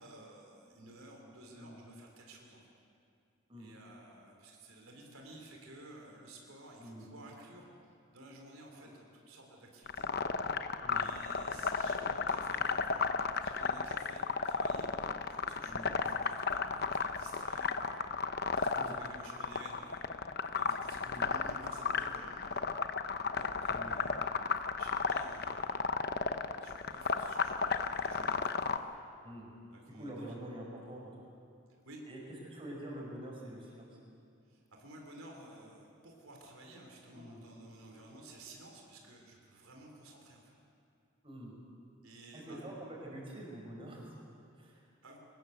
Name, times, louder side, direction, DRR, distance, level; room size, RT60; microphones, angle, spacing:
voice 1, 0.0-2.7 3.5-7.7 8.1-10.1 10.9-14.9 15.3-18.0 18.6-20.1 20.5-22.7 23.2-24.2 24.8-28.9 29.7-30.4 31.8-32.0 34.5-40.6 42.0-42.6 45.0-45.2, right 1 dB, 85° right, 1 dB, 3.8 m, -54 dB
sound 1, 9.9-28.8, left 5 dB, 50° left, 0.9 m, -33 dB
voice 2, 10.8-11.1 15.6-16.0 18.7-19.0 21.0-21.3 23.7-24.0 29.2-29.5 29.9-31.3 32.1-32.2 32.5-34.0 37.1-37.4 41.2-41.6 42.3-44.8, right 1 dB, 25° right, -2 dB, 5.3 m, -46 dB
23.5 x 19.5 x 8.1 m, 2.4 s
head